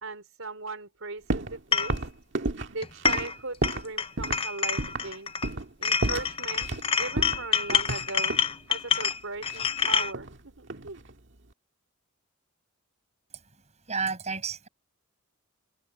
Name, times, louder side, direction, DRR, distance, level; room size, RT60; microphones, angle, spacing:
voice 1, 0.0-2.0 2.7-5.3 5.8-6.7 7.0-8.4 8.7-11.1, right 3 dB, 75° right, 4.1 m, -38 dB
sound 1, 1.3-1.6 1.9-3.9 4.2-4.4 4.8-5.1 5.4-5.7 6.0-6.9 7.2-8.5 9.5-10.4 10.7-11.1, right 2 dB, 60° right, 2.0 m, -31 dB
sound 2, 1.7-2.0 2.8-3.4 3.6-5.5 5.8-10.1, left 6 dB, 25° left, 0.6 m, -27 dB
voice 2, 13.9-14.7, right 5 dB, 35° right, 5.8 m, -31 dB
head